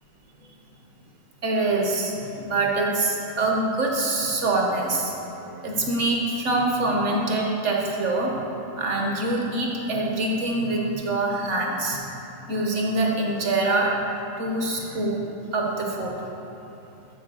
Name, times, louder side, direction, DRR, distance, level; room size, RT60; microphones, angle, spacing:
voice 1, 1.4-5.1 5.4-8.3 8.8-12.0 12.5-13.9 14.4-15.2 15.5-16.1, right 2 dB, 45° right, -1 dB, 1.2 m, -24 dB
10.0 x 4.4 x 6.3 m, 2.9 s
omnidirectional pair, 2.0 m